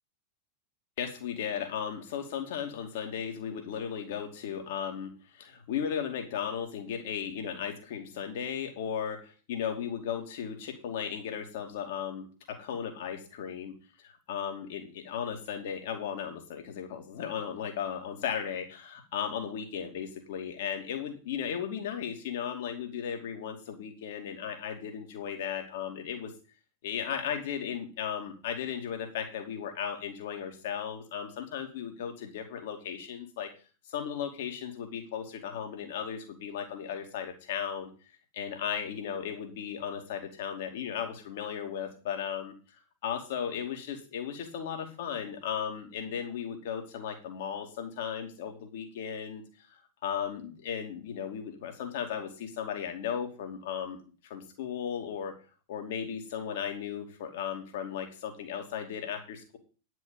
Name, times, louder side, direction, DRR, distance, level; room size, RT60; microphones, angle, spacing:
voice 1, 1.0-13.7 14.0-26.3 26.8-33.5 33.9-37.9 38.3-42.5 43.0-49.4 49.7-55.3 55.7-59.6, left 8 dB, 55° left, 4 dB, 2.5 m, -36 dB
10.0 x 6.2 x 7.2 m, 0.37 s
figure-of-eight pair, 90°, 0 cm